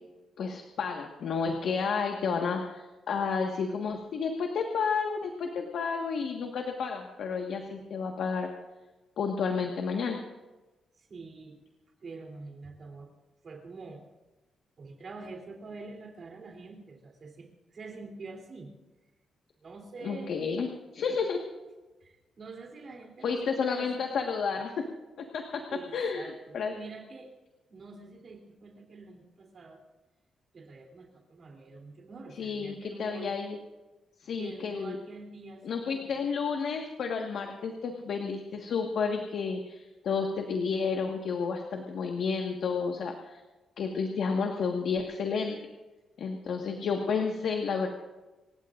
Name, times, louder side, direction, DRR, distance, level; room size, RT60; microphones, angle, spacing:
voice 1, 0.4-8.5 9.2-10.2 20.0-20.7 20.9-21.4 23.2-24.8 25.2-25.6 25.9-26.8 32.4-33.6 34.2-35.0 35.6-43.4 43.8-45.6 46.2-47.9, left 5 dB, 65° left, 2 dB, 1.5 m, -31 dB
voice 2, 11.0-11.5 12.0-13.1 13.4-14.0 14.8-18.7 19.6-20.3 22.0-24.1 24.5-24.6 25.7-27.3 27.7-29.8 30.5-33.4 34.3-36.3, right 3 dB, 40° right, 2 dB, 3.2 m, -46 dB
27.5 x 16.0 x 2.6 m, 1.1 s
wide cardioid pair, 160°, 0 cm